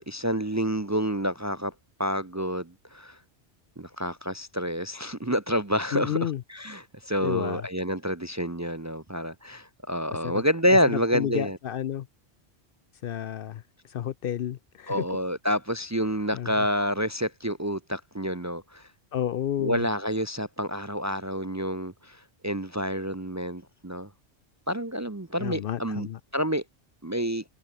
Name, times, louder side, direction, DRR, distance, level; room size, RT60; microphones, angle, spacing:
voice 1, 0.0-1.7 2.0-3.2 3.8-11.6 14.9-18.8 19.6-24.1 24.7-26.1 26.3-26.6 27.0-27.4, equal, 20° right, 0.6 m, -28 dB
voice 2, 5.9-6.4 7.2-7.7 10.2-10.4 10.9-12.1 13.0-15.1 16.3-16.7 19.1-19.9 25.4-26.2, left 10 dB, 65° left, 0.7 m, -31 dB
omnidirectional pair, 1.1 m